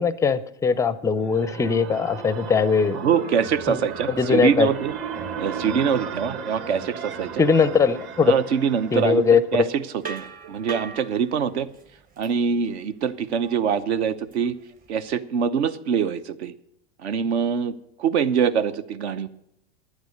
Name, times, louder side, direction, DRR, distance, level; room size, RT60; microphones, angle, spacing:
voice 1, 0.0-3.0 3.7-4.7 7.4-8.3 8.9-9.7, left 5 dB, 10° left, 17 dB, 0.4 m, -20 dB
sound 1, 0.9-9.7, right 6 dB, 40° right, 1.6 m, -35 dB
voice 2, 2.9-4.9 5.4-7.4 8.2-9.8 10.1-11.7 12.2-14.5 14.9-16.5 17.0-19.3, right 7 dB, 70° right, 14 dB, 0.9 m, -24 dB
sound 2, 10.0-15.1, right 5 dB, 25° right, 1.0 m, -41 dB
12.0 x 9.6 x 6.5 m, 0.78 s
hypercardioid pair, 100°, 35 cm